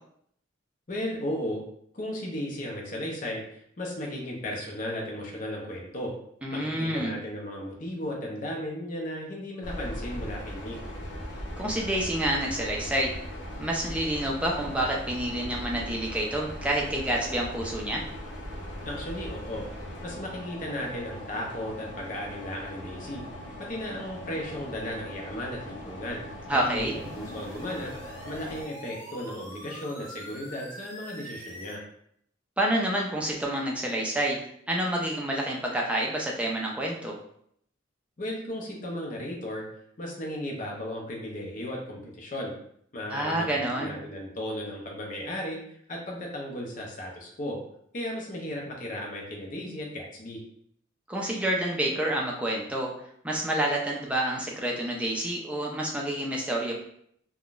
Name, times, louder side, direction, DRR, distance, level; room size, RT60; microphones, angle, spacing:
voice 1, 0.9-1.6 1.9-6.1 6.5-10.8 18.8-19.6 20.0-23.2 23.6-26.2 26.6-27.9 28.3-31.8 38.2-39.6 40.0-42.5 42.9-45.6 45.9-47.6 47.9-50.4, left 1 dB, 40° left, -1 dB, 0.7 m, -35 dB
voice 2, 6.4-7.1 11.6-13.1 13.6-18.0 26.5-26.9 32.6-37.2 43.1-43.9 51.1-52.9 53.2-56.7, right 1 dB, 5° right, -2 dB, 0.4 m, -28 dB
sound 1, 9.6-28.6, equal, 70° left, 0.8 m, -39 dB
sound 2, 26.7-31.8, equal, 25° left, 1.1 m, -44 dB
3.5 x 2.2 x 2.4 m, 0.67 s
head